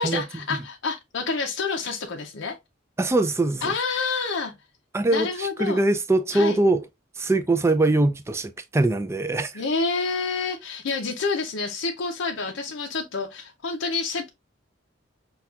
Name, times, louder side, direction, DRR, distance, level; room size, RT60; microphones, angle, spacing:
voice 1, 0.0-2.6 3.6-4.5 5.1-5.8 6.3-6.6 9.5-14.3, left 4 dB, 75° left, 0.5 m, -28 dB
voice 2, 3.0-3.7 4.9-6.8 7.2-9.6, right 2 dB, 15° right, 0.3 m, -22 dB
5.6 x 2.3 x 2.4 m
head